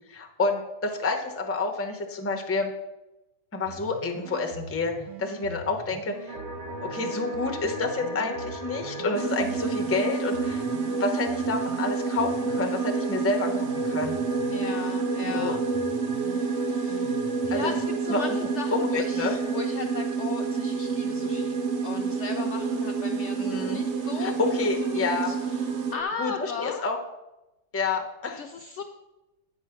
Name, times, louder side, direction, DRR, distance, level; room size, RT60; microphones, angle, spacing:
voice 1, 0.0-2.7 3.5-4.9 5.2-6.3 6.8-10.6 11.0-14.2 15.3-15.5 17.5-17.7 18.1-19.4 23.4-23.8 24.2-25.3 26.2-27.0 27.7-28.4, left 3 dB, 20° left, 3 dB, 0.3 m, -29 dB
sound 1, 3.6-17.8, right 6 dB, 85° right, 1.3 m, -44 dB
sound 2, 6.3-26.0, right 1 dB, 50° right, 1.1 m, -34 dB
sound 3, 9.1-26.0, right 6 dB, 65° right, 0.6 m, -30 dB
voice 2, 14.5-15.6 16.2-24.4 24.8-26.9 28.4-28.8, left 5 dB, 90° left, 4 dB, 0.6 m, -37 dB
8.7 x 4.8 x 5.7 m, 0.97 s
omnidirectional pair, 1.9 m